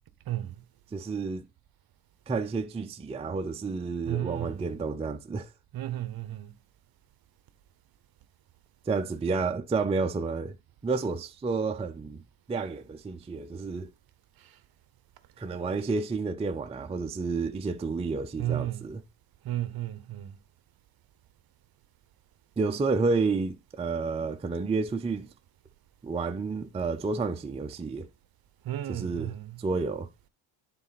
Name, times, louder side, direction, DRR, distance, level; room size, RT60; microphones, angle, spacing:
voice 1, 0.3-0.6 4.1-4.7 5.7-6.5 18.4-18.8 19.4-20.3 28.7-29.5, right 13 dB, 45° right, 0.8 m, -33 dB
voice 2, 0.9-1.5 2.3-5.5 8.9-10.5 10.8-12.2 12.5-13.9 15.4-19.0 22.6-25.3 26.0-28.1 28.9-30.1, right 4 dB, 15° right, 0.5 m, -30 dB
8.8 x 4.1 x 4.1 m
cardioid pair, 110°, 49 cm